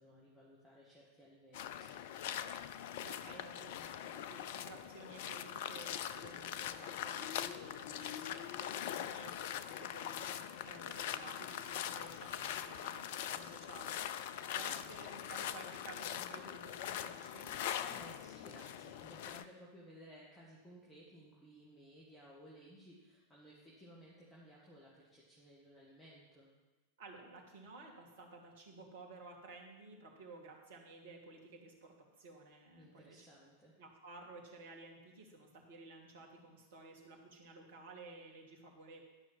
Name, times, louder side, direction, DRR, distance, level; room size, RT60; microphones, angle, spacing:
voice 1, 0.0-2.4 8.8-9.1 14.7-14.9 17.8-26.5 32.8-33.7, equal, 5° left, -7 dB, 2.3 m, -58 dB
sound 1, 1.5-19.4, left 10 dB, 50° left, 0.5 m, -42 dB
voice 2, 3.0-8.7 9.0-9.3 9.7-17.5 27.0-33.3 33.8-39.0, right 3 dB, 60° right, 1 dB, 2.3 m, -54 dB
12.0 x 6.2 x 7.6 m, 1.2 s
figure-of-eight pair, 90°, 0 cm